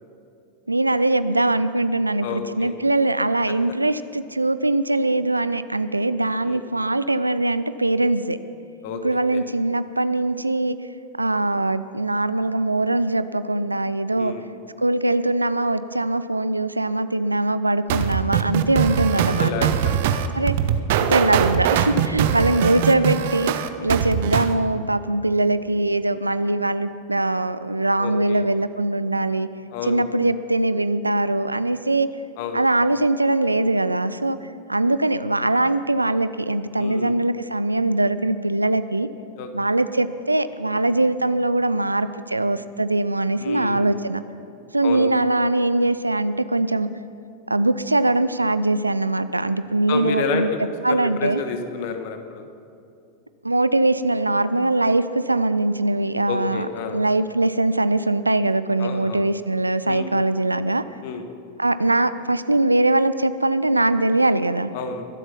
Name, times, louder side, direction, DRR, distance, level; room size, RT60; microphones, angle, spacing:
voice 1, 0.7-8.4 9.0-10.8 11.2-14.3 14.8-19.7 20.3-20.6 21.1-23.5 23.8-29.5 29.8-32.1 32.5-34.4 34.7-39.1 39.5-44.2 44.7-46.9 47.5-50.5 50.8-51.4 53.4-56.7 56.9-60.8 61.6-64.7, right 2 dB, 85° right, 14 dB, 0.5 m, -22 dB
voice 2, 2.2-2.7 6.4-6.6 8.8-9.0 9.3-9.4 14.1-14.5 19.2-19.9 20.9-21.1 21.9-22.1 28.0-28.5 29.7-30.1 32.4-32.6 36.8-37.1 39.4-39.5 43.4-43.9 44.8-45.1 49.9-52.5 56.3-57.0 58.8-59.2 59.8-60.1 61.0-61.2 64.7-65.0, left 5 dB, 50° left, 7 dB, 1.4 m, -30 dB
sound 1, 17.9-24.5, right 9 dB, 50° right, 0.7 m, -21 dB
22.5 x 8.0 x 5.9 m, 2.6 s
figure-of-eight pair, 90°, 0 cm